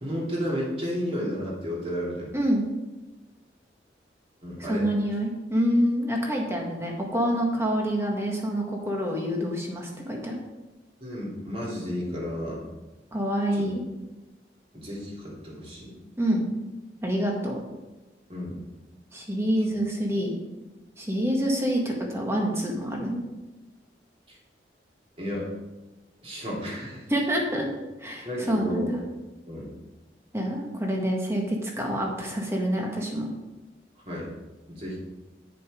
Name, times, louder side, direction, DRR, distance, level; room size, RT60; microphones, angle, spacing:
voice 1, 0.0-2.3 4.4-4.9 11.0-12.7 13.5-13.6 14.7-16.0 18.3-18.6 19.6-19.8 24.3-24.4 25.2-25.5 26.2-27.1 28.2-29.0 29.5-29.7 34.0-34.3 34.7-35.0, equal, 35° right, -4 dB, 3.0 m, -32 dB
voice 2, 2.3-2.6 4.7-10.4 13.1-13.8 16.2-16.5 17.0-17.6 19.1-20.3 21.0-23.2 27.1-27.7 28.0-29.0 30.3-33.3, equal, 15° right, 0 dB, 1.6 m, -27 dB
9.8 x 6.8 x 5.0 m, 1.1 s
head